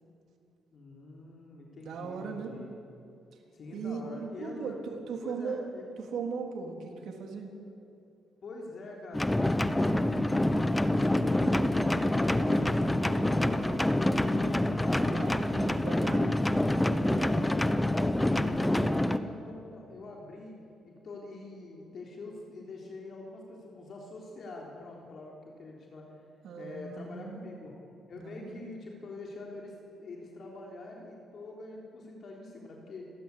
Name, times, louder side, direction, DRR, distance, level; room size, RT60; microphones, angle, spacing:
voice 1, 0.7-2.7 3.5-4.7 5.2-5.8 8.4-11.7 12.2-15.3 17.1-20.6 20.8-26.2 26.6-27.8 28.1-33.1, left 2 dB, 55° left, -1 dB, 3.8 m, -45 dB
voice 2, 1.8-2.5 3.7-5.7 6.0-7.5 15.1-16.4 26.4-27.5 28.2-28.7, right 5 dB, 70° right, 2 dB, 3.5 m, -38 dB
sound 1, 9.1-19.2, left 1 dB, 10° left, 1.0 m, -26 dB
29.0 x 13.5 x 8.5 m, 2.6 s
cardioid pair, 90°, 0 cm